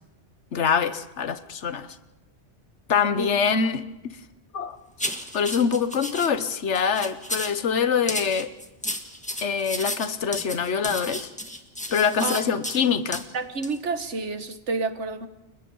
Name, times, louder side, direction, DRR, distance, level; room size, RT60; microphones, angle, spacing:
voice 1, 0.5-2.0 2.9-3.9 4.5-4.8 5.3-8.5 9.4-11.3 11.9-13.2, left 6 dB, 80° left, 12 dB, 1.4 m, -24 dB
sound 1, 5.0-6.3 6.7-7.6 8.1-12.8 13.1-13.2 13.6-13.8, equal, 5° left, 1.6 m, -33 dB
voice 2, 13.3-15.3, right 3 dB, 85° right, 10 dB, 1.7 m, -29 dB
29.5 x 23.0 x 5.5 m, 1.0 s
omnidirectional pair, 1.2 m